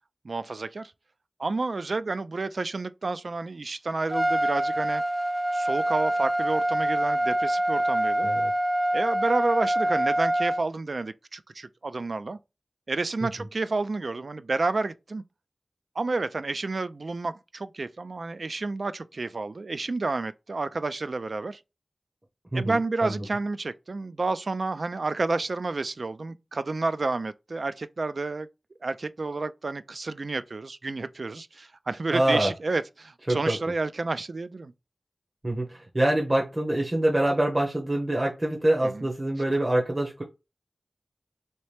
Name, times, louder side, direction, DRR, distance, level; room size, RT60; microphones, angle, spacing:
voice 1, 0.2-0.9 1.4-5.0 5.5-8.3 8.9-12.4 12.9-15.2 16.0-21.6 22.5-28.5 28.8-34.7 38.8-39.1, right 3 dB, 75° right, 0.3 m, -30 dB
Trumpet, 4.1-10.6, right 1 dB, 15° right, 0.5 m, -25 dB
voice 2, 22.5-23.3 32.1-32.5 33.3-33.6 35.4-40.2, right 1 dB, 35° right, 0.8 m, -25 dB
3.1 x 2.8 x 3.3 m
wide cardioid pair, 55°, 0 cm